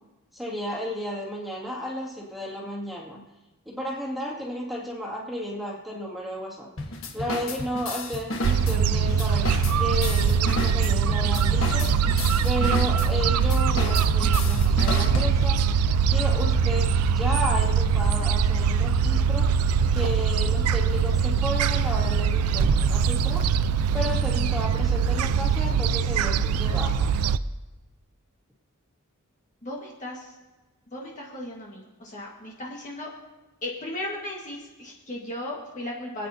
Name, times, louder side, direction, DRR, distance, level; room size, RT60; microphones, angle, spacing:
voice 1, 0.3-3.2 3.7-6.7 7.1-12.0 12.4-19.6 19.9-23.5 23.9-27.1, equal, ahead, -5 dB, 2.4 m, -33 dB
sound 1, 6.8-15.7, left 2 dB, 60° left, 1.5 m, -33 dB
Gull seagull, 8.4-27.4, right 6 dB, 80° right, 0.4 m, -22 dB
voice 2, 29.6-30.3 30.9-33.1 33.6-36.3, left 1 dB, 35° left, -3 dB, 1.7 m, -36 dB
27.5 x 9.2 x 2.8 m, 1.1 s
head